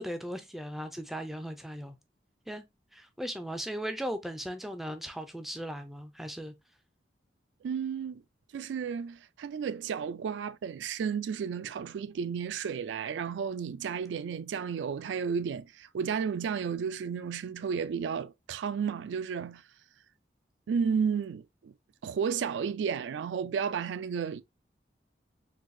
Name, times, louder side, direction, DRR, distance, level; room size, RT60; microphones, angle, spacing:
voice 1, 0.0-2.0 2.5-2.6 2.9-6.5, equal, ahead, 0.3 m, -37 dB
voice 2, 7.6-8.2 8.5-19.6 20.7-21.7 22.0-24.4, right 6 dB, 85° right, 0.3 m, -32 dB
3.9 x 2.6 x 2.5 m
head